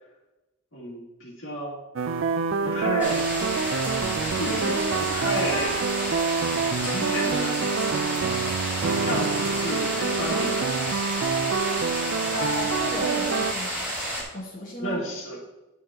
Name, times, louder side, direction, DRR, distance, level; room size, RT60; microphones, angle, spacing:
voice 1, 0.7-1.8 2.6-3.2 4.3-5.8 6.4-8.4 9.0-10.7 14.8-15.4, equal, 65° left, -4 dB, 2.5 m, -32 dB
sound 1, 2.0-13.5, right 5 dB, 65° right, 0.4 m, -27 dB
sound 2, 3.0-14.2, equal, 10° right, 2.1 m, -30 dB
voice 2, 12.3-13.9 14.3-15.0, left 1 dB, 40° left, -6 dB, 1.5 m, -34 dB
11.0 x 6.4 x 2.9 m, 0.99 s
head